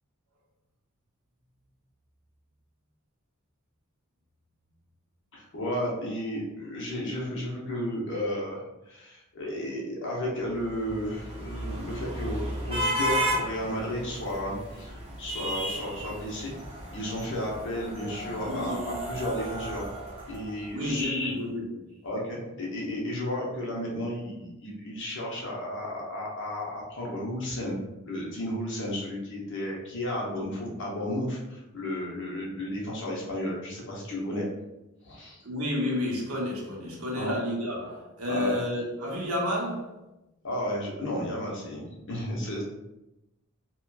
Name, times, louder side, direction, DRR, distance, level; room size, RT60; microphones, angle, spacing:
voice 1, 5.3-16.5 16.9-19.8 20.3-21.3 22.0-27.7 28.0-34.5 35.0-35.4 36.9-37.3 38.3-38.6 40.4-42.6, left 1 dB, 55° left, -3 dB, 0.7 m, -33 dB
sound 1, 10.6-20.9, equal, 30° right, 0.6 m, -34 dB
voice 2, 18.5-19.0 20.7-21.9 35.4-40.0, left 1 dB, 70° right, -2 dB, 0.7 m, -31 dB
2.8 x 2.2 x 2.2 m, 0.94 s
head